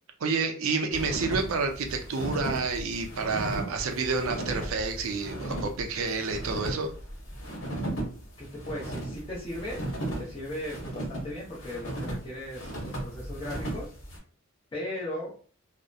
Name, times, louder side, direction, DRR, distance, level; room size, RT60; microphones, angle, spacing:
voice 1, 0.2-6.9, right 4 dB, 80° right, 4 dB, 0.5 m, -29 dB
sound 1, 0.9-14.2, right 1 dB, 70° left, 1.0 m, -36 dB
voice 2, 8.4-9.8 10.2-13.9 14.7-15.3, left 1 dB, 25° left, -7 dB, 0.6 m, -37 dB
2.7 x 2.1 x 2.3 m, 0.40 s
head